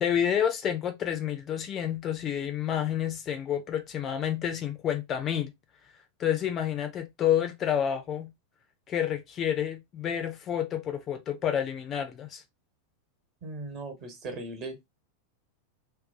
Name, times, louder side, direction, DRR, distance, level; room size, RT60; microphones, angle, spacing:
voice 1, 0.0-5.5 6.2-8.3 8.9-12.4, left 9 dB, 30° left, 0.4 m, -29 dB
voice 2, 13.4-14.8, right 2 dB, 40° right, 1.0 m, -38 dB
2.6 x 2.2 x 2.5 m
figure-of-eight pair, 90°, 0 cm